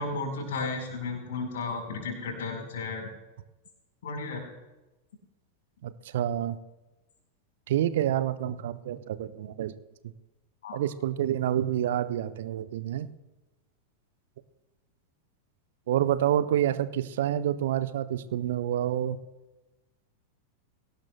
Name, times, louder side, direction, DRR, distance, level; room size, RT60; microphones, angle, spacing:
voice 1, 0.0-3.1 4.0-4.4 10.6-10.8, left 3 dB, 60° left, 3 dB, 4.7 m, -33 dB
voice 2, 5.8-6.6 7.7-9.7 10.7-13.1 15.9-19.2, right 11 dB, 55° right, 13 dB, 0.7 m, -28 dB
23.0 x 18.0 x 2.3 m, 1.1 s
figure-of-eight pair, 90°, 0 cm